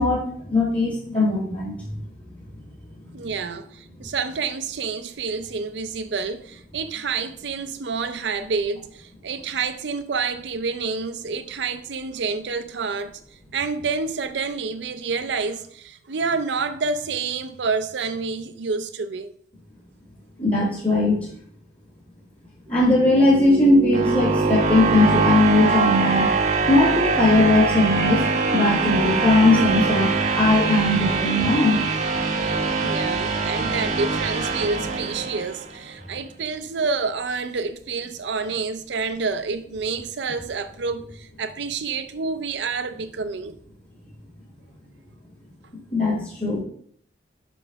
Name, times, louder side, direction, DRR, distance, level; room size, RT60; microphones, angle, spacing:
voice 1, 0.0-2.0 20.4-21.3 22.7-26.3 26.7-31.8 45.9-46.6, left 2 dB, 30° left, 1.1 m, -19 dB
voice 2, 3.1-13.2 13.5-19.3 32.4-43.6, right 4 dB, 80° right, 0.5 m, -28 dB
sound 1, 22.8-35.8, right 4 dB, 40° right, 0.7 m, -23 dB
5.9 x 5.4 x 3.5 m
head